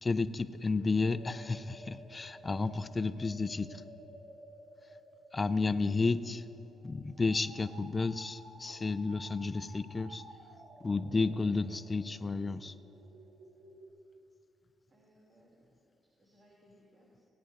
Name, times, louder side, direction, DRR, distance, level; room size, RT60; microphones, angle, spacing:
voice 1, 0.0-3.8 5.3-6.4 6.8-10.2 10.8-12.7, left 3 dB, 25° left, 13 dB, 0.4 m, -32 dB
sound 1, 0.6-13.9, right 1 dB, 85° right, 2.8 m, -55 dB
voice 2, 5.5-6.0 6.7-6.8 14.9-15.8 16.2-17.3, equal, 45° right, -6 dB, 2.8 m, -65 dB
18.0 x 10.0 x 2.6 m, 2.9 s
cardioid pair, 90°, 0 cm